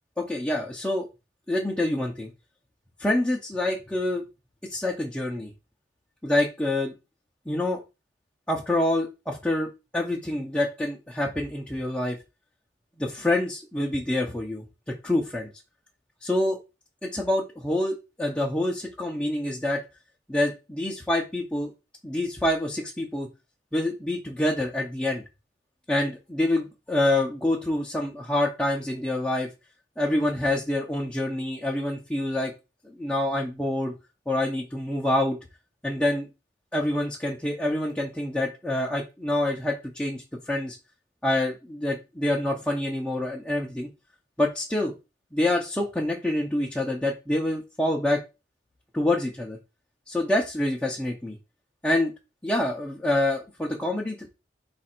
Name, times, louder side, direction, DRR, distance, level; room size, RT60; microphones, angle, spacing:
voice 1, 0.2-1.1 1.5-2.3 3.0-4.2 4.7-5.5 6.2-6.9 7.5-7.8 8.5-12.2 13.0-14.6 15.0-15.5 16.2-16.6 17.0-19.8 20.3-21.7 22.0-23.3 23.7-25.2 25.9-29.5 30.0-32.5 32.8-33.9 34.3-35.4 35.8-36.3 36.7-40.8 41.2-43.9 44.4-44.9 45.3-48.2 48.9-49.6 50.1-51.4 51.8-52.1 52.4-54.3, left 1 dB, 5° left, -2 dB, 0.6 m, -26 dB
4.1 x 2.5 x 4.3 m, 0.27 s
head